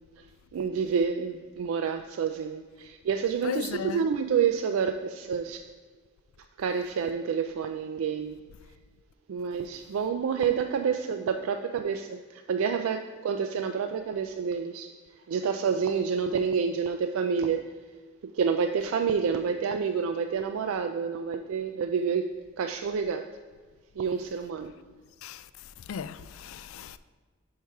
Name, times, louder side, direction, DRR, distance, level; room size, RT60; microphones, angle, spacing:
voice 1, 0.5-5.6 6.6-8.4 9.3-14.9 15.3-17.7 18.2-22.3 22.6-23.3 24.0-24.8, right 6 dB, 85° right, 0.3 m, -28 dB
voice 2, 3.4-4.1 25.2-27.0, left 8 dB, 80° left, 0.3 m, -37 dB
5.6 x 4.7 x 5.8 m
head